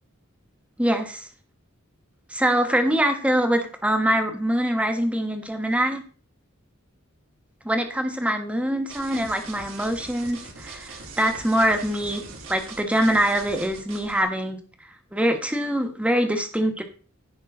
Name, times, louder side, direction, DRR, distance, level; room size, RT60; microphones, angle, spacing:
voice 1, 0.8-1.3 2.3-6.0 7.6-12.2 12.5-14.6 15.1-16.8, right 1 dB, 5° right, 5 dB, 1.4 m, -24 dB
sound 1, 8.9-14.2, right 4 dB, 80° right, 3.0 m, -41 dB
16.0 x 5.5 x 3.8 m, 0.40 s
head